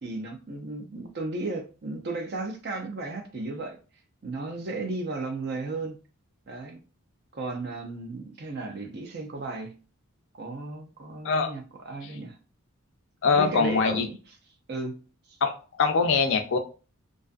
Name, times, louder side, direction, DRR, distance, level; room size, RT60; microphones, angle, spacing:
voice 1, 0.0-3.8 4.2-6.0 6.5-6.8 7.3-9.7 10.3-12.4 13.3-14.2 14.7-15.0 15.3-15.4, right 3 dB, 50° right, 0.5 m, -34 dB
voice 2, 13.2-14.1 15.4-16.6, left 5 dB, 60° left, 0.4 m, -23 dB
2.5 x 2.4 x 2.3 m
head